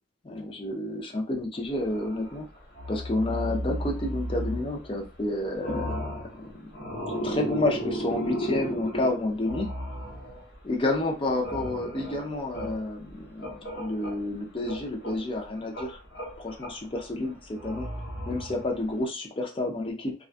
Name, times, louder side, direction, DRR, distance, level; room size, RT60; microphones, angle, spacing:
voice 1, 0.2-2.5 2.9-9.7 10.6-16.0 16.4-17.9 18.3-20.1, left 2 dB, 30° left, 2 dB, 0.5 m, -30 dB
sound 1, 1.8-2.4 2.7-5.3 5.5-10.7 11.0-14.3 14.6-19.0, equal, 60° left, 1.1 m, -35 dB
2.4 x 2.2 x 2.4 m, 0.32 s
head